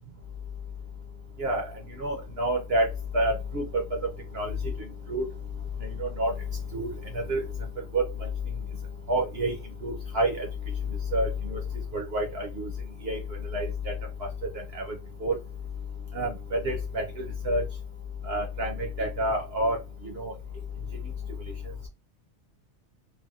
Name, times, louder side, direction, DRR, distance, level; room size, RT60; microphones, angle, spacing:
voice 1, 1.4-2.9 3.1-3.8 4.3-4.6 5.1-5.2 5.8-6.3 6.7-6.9 7.1-7.4 7.9-8.0 9.1-9.5 9.8-10.5 11.1-11.6 11.9-12.7 13.0-13.2 13.5-13.9 14.7-14.8 15.2-15.4 16.1-17.6 18.2-19.8 20.0-20.3, right 1 dB, 60° right, 1 dB, 0.7 m, -28 dB
3.3 x 2.2 x 2.3 m, 0.27 s
omnidirectional pair, 1.4 m